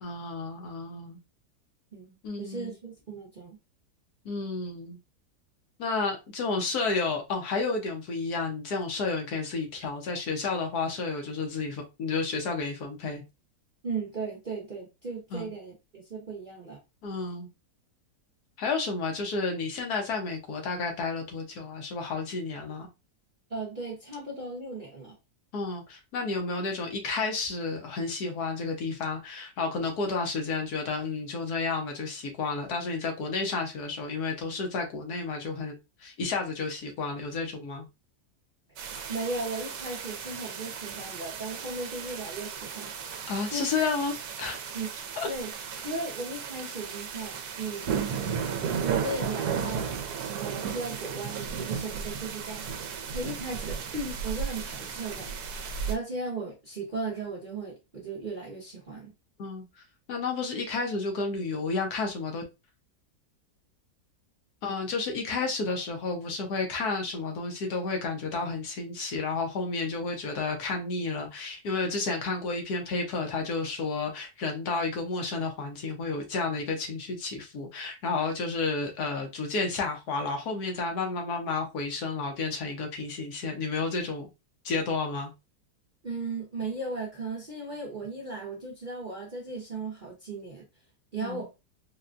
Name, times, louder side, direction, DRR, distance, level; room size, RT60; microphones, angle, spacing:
voice 1, 0.0-1.2 2.2-2.7 4.2-5.0 5.8-13.2 15.3-15.5 17.0-17.5 18.6-22.9 25.5-35.7 36.0-37.9 43.3-44.6 45.2-45.3 59.4-59.6 60.1-62.4 64.6-84.3 84.6-85.3 91.2-91.4, left 4 dB, 70° left, 1.3 m, -31 dB
voice 2, 1.9-3.6 13.8-16.8 23.5-25.2 39.1-43.0 43.5-43.7 44.7-44.9 45.3-45.5 45.8-47.9 48.8-49.8 50.4-59.1 86.0-90.7 91.1-91.5, right 3 dB, 45° right, 0.7 m, -36 dB
sound 1, 38.8-55.9, right 7 dB, 70° right, 1.1 m, -35 dB
4.1 x 2.2 x 2.5 m
omnidirectional pair, 1.8 m